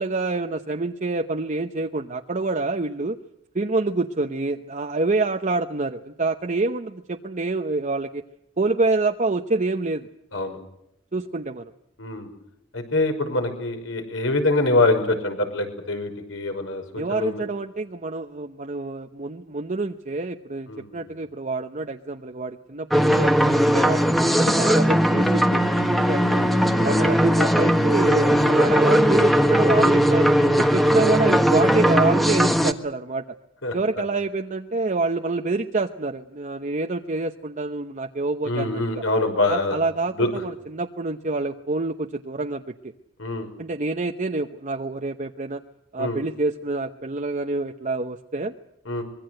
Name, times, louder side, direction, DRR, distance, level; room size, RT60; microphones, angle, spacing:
voice 1, 0.0-3.2 3.5-8.2 8.6-10.1 11.1-11.7 16.9-23.4 23.7-26.5 26.8-30.3 30.6-33.2 33.7-39.0 39.5-42.7 43.6-45.6 45.9-48.5, right 3 dB, 40° right, 5 dB, 0.9 m, -27 dB
voice 2, 12.0-12.3 12.7-17.4 20.7-21.1 26.8-27.0 33.6-33.8 38.4-39.8 40.2-40.3 43.2-43.5 46.0-46.2 48.9-49.0, left 2 dB, 70° left, 6 dB, 5.6 m, -24 dB
sound 1, 22.9-32.7, equal, ahead, 1.4 m, -19 dB
25.0 x 22.0 x 7.8 m, 0.80 s
head